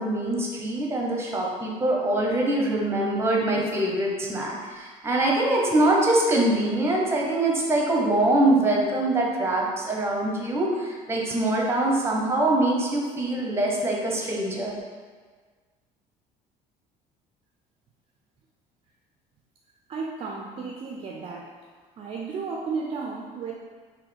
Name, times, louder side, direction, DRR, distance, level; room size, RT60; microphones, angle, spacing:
voice 1, 0.0-14.8, right 1 dB, 15° right, -1 dB, 0.8 m, -24 dB
voice 2, 19.9-21.5 22.0-23.5, right 4 dB, 35° right, -1 dB, 0.4 m, -33 dB
3.7 x 2.7 x 3.3 m, 1.5 s
cardioid pair, 110°, 15 cm